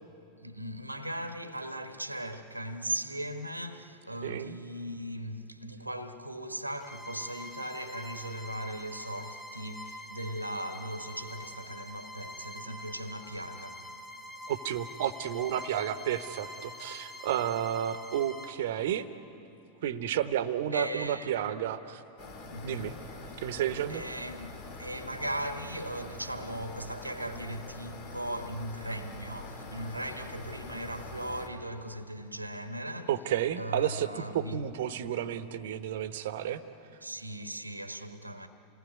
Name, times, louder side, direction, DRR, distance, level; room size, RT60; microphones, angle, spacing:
voice 1, 0.4-13.9 20.7-21.5 22.5-23.0 23.9-33.1 33.6-34.6 37.0-38.5, right 1 dB, 85° right, 1.2 m, -38 dB
voice 2, 4.2-4.6 14.5-19.1 19.8-22.0 22.6-22.9 23.4-24.0 33.1-36.6, right 10 dB, 55° right, 1.0 m, -31 dB
Bowed string instrument, 6.8-18.6, left 1 dB, 15° left, 2.1 m, -45 dB
sound 1, 22.2-31.5, left 2 dB, 50° left, 2.9 m, -45 dB
28.0 x 18.5 x 9.5 m
figure-of-eight pair, 90°, 0 cm